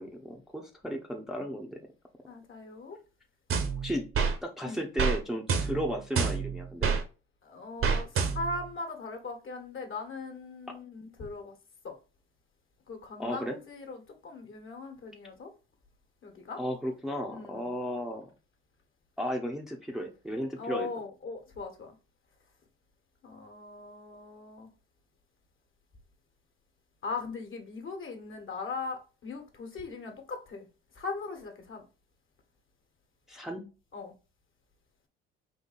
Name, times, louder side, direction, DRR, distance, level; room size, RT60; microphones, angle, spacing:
voice 1, 0.0-1.8 3.8-4.1 4.4-6.9 13.2-13.6 16.6-18.3 19.2-20.9 33.3-33.7, equal, ahead, 0.8 m, -34 dB
voice 2, 2.3-3.0 4.6-4.8 7.4-11.5 11.8-11.9 12.9-15.5 16.2-16.6 17.3-17.7 20.6-21.9 23.2-24.7 27.0-30.7 31.0-31.9 33.9-34.1, left 3 dB, 45° left, 1.5 m, -39 dB
sound 1, 3.5-4.4 5.0-5.2 5.5-7.0 7.8-8.6, right 5 dB, 45° right, 1.0 m, -28 dB
3.9 x 2.7 x 4.1 m
supercardioid pair, 70°, 30 cm